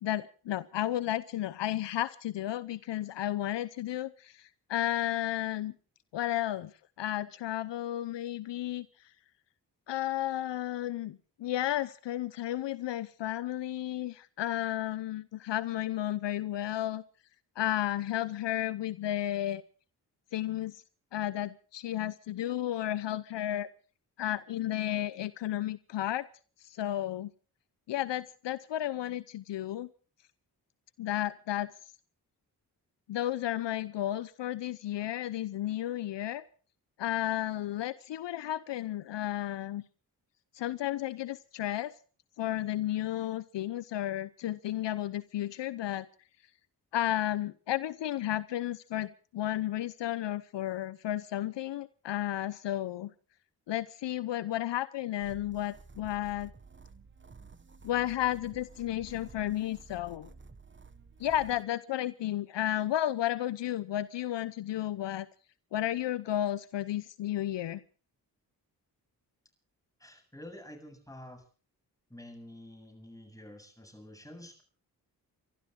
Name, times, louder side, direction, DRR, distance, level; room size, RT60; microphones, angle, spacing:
voice 1, 0.0-5.7 6.1-6.7 7.0-8.9 9.9-17.0 17.6-19.6 20.3-20.8 21.1-23.7 24.2-26.3 26.6-27.3 27.9-29.9 31.0-31.7 33.1-36.4 37.0-39.8 40.5-41.9 42.4-46.1 46.9-53.1 53.7-56.5 57.8-60.3 61.2-65.3 65.7-67.8, left 13 dB, 80° left, 15 dB, 0.8 m, -33 dB
sound 1, 55.2-61.6, right 4 dB, 25° right, 1.4 m, -52 dB
voice 2, 70.0-71.4 72.1-74.6, left 1 dB, 10° left, 4 dB, 7.8 m, -49 dB
30.0 x 13.0 x 3.7 m, 0.39 s
cardioid pair, 50°, 42 cm